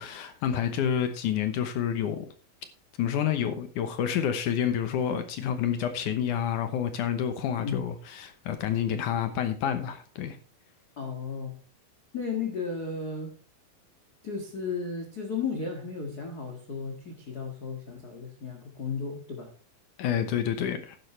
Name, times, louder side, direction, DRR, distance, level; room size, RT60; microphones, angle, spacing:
voice 1, 0.0-2.3 3.0-10.4 20.0-21.0, left 9 dB, 70° left, 2.2 m, -29 dB
voice 2, 11.0-11.6 12.1-13.3 14.2-19.5, left 5 dB, 45° left, 1.3 m, -34 dB
12.0 x 10.5 x 3.2 m
omnidirectional pair, 4.2 m